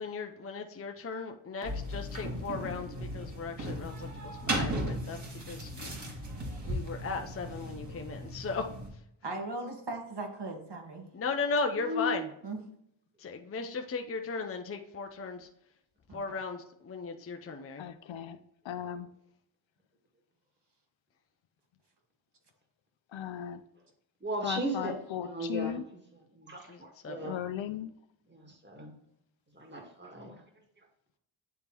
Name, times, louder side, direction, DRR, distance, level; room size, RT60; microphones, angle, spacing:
voice 1, 0.0-5.2 5.5-5.9 6.6-8.6 11.1-12.3 13.2-15.5 16.1-17.8 26.7-27.3, left 4 dB, 30° left, 4 dB, 0.6 m, -36 dB
sound 1, 1.6-8.9, right 1 dB, 35° right, 1.9 m, -37 dB
voice 2, 9.2-11.1 12.4-12.6 16.1-16.4, right 2 dB, 55° right, 2 dB, 1.8 m, -39 dB
voice 3, 11.8-12.2 24.2-24.9 25.2-25.8 26.4-27.4 28.3-28.9 29.6-30.4, equal, 20° right, 2 dB, 1.9 m, -36 dB
voice 4, 17.8-18.4 18.6-19.1 23.1-23.6 24.4-25.9 27.2-27.9, left 10 dB, 65° left, 10 dB, 0.7 m, -37 dB
9.5 x 3.6 x 3.0 m, 0.75 s
cardioid pair, 65°, 48 cm